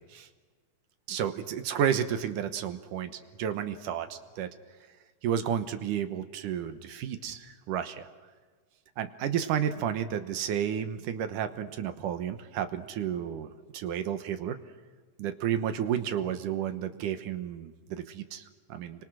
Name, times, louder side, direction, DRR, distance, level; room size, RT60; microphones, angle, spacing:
voice 1, 1.1-4.5 5.2-8.1 9.0-14.6 15.2-19.0, right 9 dB, 75° right, 10 dB, 2.6 m, -32 dB
30.0 x 25.0 x 6.3 m, 1.5 s
omnidirectional pair, 3.8 m